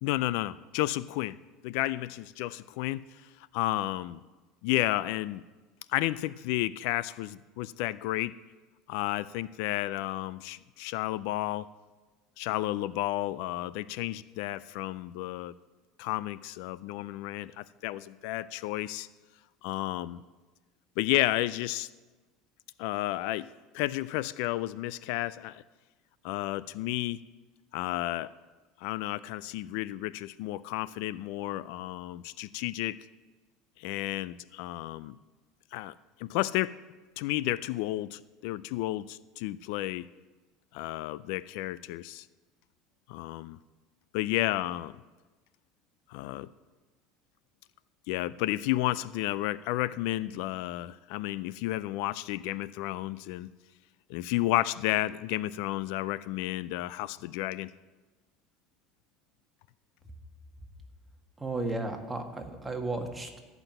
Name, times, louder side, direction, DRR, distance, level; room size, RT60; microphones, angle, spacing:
voice 1, 0.0-1.4 1.6-3.1 3.5-4.2 4.6-5.4 5.9-8.4 8.9-11.7 12.4-15.5 16.0-19.1 19.6-20.2 21.0-21.9 22.8-23.5 23.7-25.6 26.2-27.2 27.7-28.3 28.8-33.0 33.8-35.2 35.7-35.9 36.2-36.8 37.2-40.1 40.7-42.2 43.1-43.6 44.1-45.0 46.1-46.5 48.1-53.5 54.1-57.7, left 16 dB, 75° left, 18 dB, 0.3 m, -32 dB
voice 2, 61.4-63.4, right 2 dB, 10° right, 2 dB, 1.7 m, -34 dB
13.5 x 6.0 x 9.0 m, 1.3 s
supercardioid pair, 115°, 0 cm